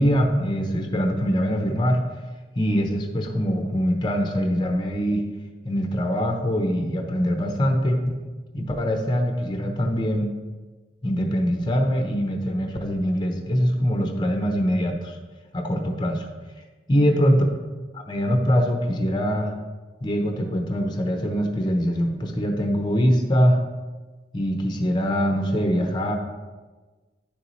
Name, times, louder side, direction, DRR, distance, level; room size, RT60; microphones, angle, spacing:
voice 1, 0.0-2.0 2.6-5.2 5.6-8.2 8.5-10.3 11.0-15.2 15.5-16.3 16.9-17.4 17.9-19.5 20.0-23.6 24.3-26.1, equal, 25° left, 3 dB, 0.8 m, -23 dB
10.0 x 6.9 x 3.2 m, 1.3 s
head